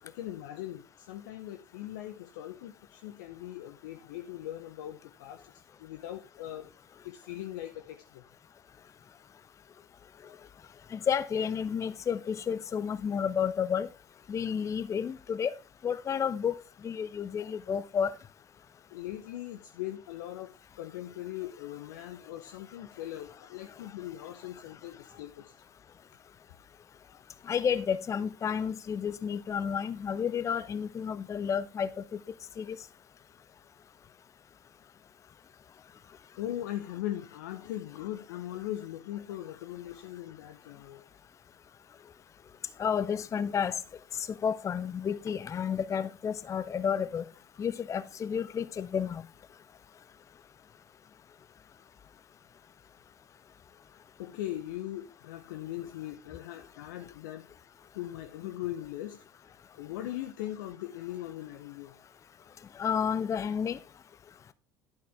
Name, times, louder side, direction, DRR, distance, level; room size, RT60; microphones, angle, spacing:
voice 1, 0.0-5.5 5.8-6.7 7.0-8.2 10.2-10.4 18.9-20.5 20.8-25.6 27.1-27.2 36.4-41.0 53.7-57.5 57.9-62.0 62.5-62.6, left 13 dB, 65° left, 0.8 m, -40 dB
voice 2, 10.9-13.9 14.3-15.5 15.8-16.6 16.8-18.1 27.5-31.9 32.6-32.8 42.8-43.8 44.2-47.2 47.6-49.2 62.8-63.8, left 7 dB, 30° left, 0.6 m, -31 dB
11.0 x 9.4 x 3.4 m
figure-of-eight pair, 65°, 11 cm